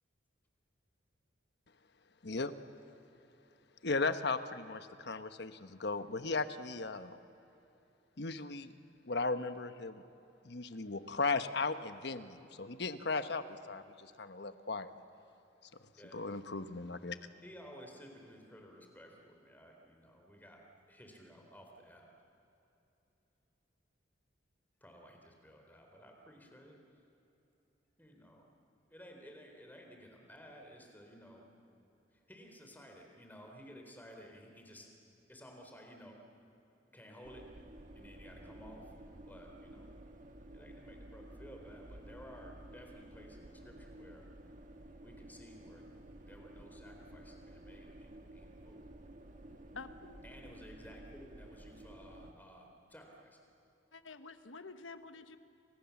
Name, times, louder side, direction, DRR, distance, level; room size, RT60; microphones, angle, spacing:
voice 1, 3.8-7.2 8.2-8.7 9.1-10.0 10.4-14.9 16.1-17.2, left 3 dB, 60° left, 10 dB, 1.2 m, -36 dB
voice 2, 17.4-20.6 20.9-22.1 24.8-26.8 28.0-28.5 28.9-31.5 32.1-34.9 35.3-36.2 36.9-37.4 38.0-38.9 39.3-39.9 40.5-44.3 45.0-45.9 46.2-48.9 50.2-53.4, equal, 10° left, 2 dB, 4.1 m, -55 dB
sound 1, 37.2-52.3, right 1 dB, 40° right, 1.7 m, -53 dB
voice 3, 49.7-50.2 53.9-55.4, left 3 dB, 90° left, 9 dB, 1.4 m, -49 dB
29.5 x 25.5 x 7.2 m, 2.9 s
head